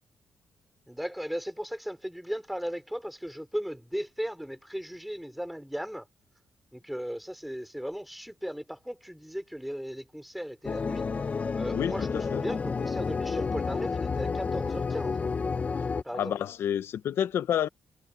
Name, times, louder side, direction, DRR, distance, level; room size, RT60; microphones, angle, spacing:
voice 1, 0.9-6.1 6.7-11.1 11.6-15.3 16.0-16.3, equal, ahead, 5.0 m, -36 dB
sound 1, 10.6-16.0, left 5 dB, 35° left, 0.7 m, -30 dB
voice 2, 11.7-12.4 16.1-17.7, left 9 dB, 75° left, 1.0 m, -29 dB
cardioid pair, 100°, 4 cm